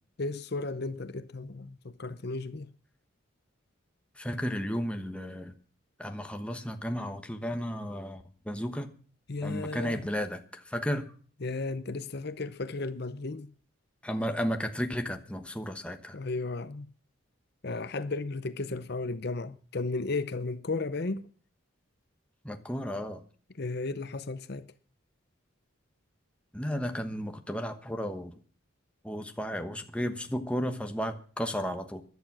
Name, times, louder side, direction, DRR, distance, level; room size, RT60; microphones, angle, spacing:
voice 1, 0.2-2.7 9.3-10.1 11.4-13.5 16.1-16.9 17.6-21.2 23.6-24.7, left 3 dB, 50° left, 0.7 m, -34 dB
voice 2, 4.2-5.5 6.0-8.9 9.4-11.1 14.0-16.2 22.4-23.2 26.5-28.3 29.0-32.0, equal, 5° left, 1.2 m, -33 dB
16.5 x 11.0 x 6.1 m
head